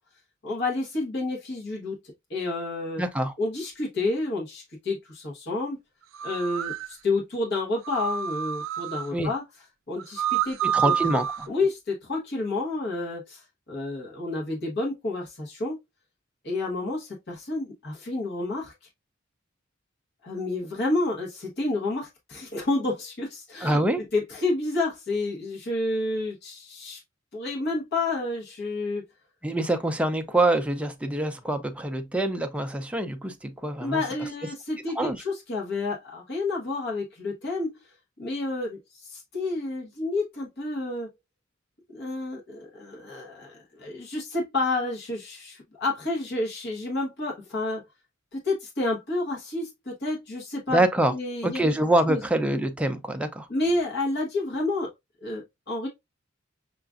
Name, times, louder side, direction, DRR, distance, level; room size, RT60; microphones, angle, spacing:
voice 1, 0.4-2.0 2.3-3.0 3.4-5.8 6.2-9.4 9.9-10.9 11.5-15.8 16.4-18.7 20.2-23.8 24.1-27.0 27.3-29.0 33.8-37.8 38.2-41.1 41.9-47.8 48.3-50.8 51.1-51.7 52.1-52.2 53.5-54.9 55.2-55.9, left 2 dB, 60° left, 1.1 m, -30 dB
voice 2, 3.0-3.3 9.1-9.3 10.7-11.5 23.6-24.0 29.4-34.0 35.0-35.2 50.7-51.1 51.4-53.5, right 1 dB, 5° right, 0.4 m, -25 dB
sound 1, 6.1-6.9 7.9-9.1 10.0-11.5, right 9 dB, 80° right, 0.4 m, -28 dB
5.7 x 2.4 x 2.4 m
head